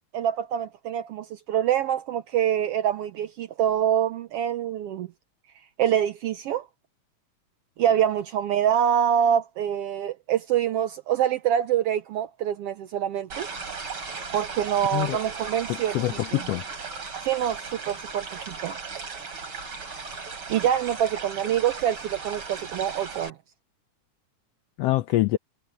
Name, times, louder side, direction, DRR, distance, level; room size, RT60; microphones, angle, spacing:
voice 1, 0.0-5.1 5.8-6.7 7.8-13.5 14.3-16.0 16.3-16.4 17.2-18.8 20.5-23.3, right 10 dB, 75° right, 1.4 m, -25 dB
sound 1, 13.3-23.3, right 4 dB, 45° right, 4.4 m, -37 dB
voice 2, 15.7-16.6 24.8-25.4, left 16 dB, 85° left, 1.4 m, -25 dB
omnidirectional pair, 3.4 m